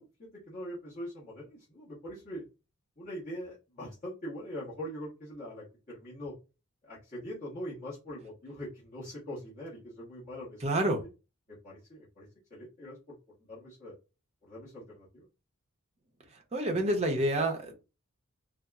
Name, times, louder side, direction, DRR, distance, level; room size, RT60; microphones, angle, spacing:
voice 1, 0.0-2.4 3.0-6.3 6.8-10.6 11.5-13.1 13.5-13.9 14.4-15.3, equal, 35° left, -9 dB, 1.1 m, -42 dB
voice 2, 10.6-11.0 16.5-17.7, right 1 dB, 30° right, 2 dB, 0.6 m, -28 dB
4.0 x 2.0 x 2.3 m, 0.30 s
head